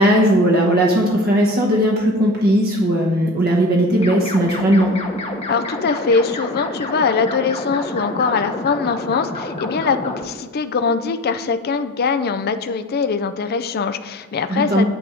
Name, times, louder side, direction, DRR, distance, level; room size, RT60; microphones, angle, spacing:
voice 1, 0.0-4.9 14.5-14.9, equal, 45° right, -1 dB, 1.0 m, -17 dB
sound 1, 4.0-10.2, left 2 dB, 30° left, 0.9 m, -29 dB
voice 2, 5.5-14.8, left 5 dB, 45° left, 10 dB, 0.4 m, -22 dB
9.2 x 3.5 x 6.4 m, 1.3 s
head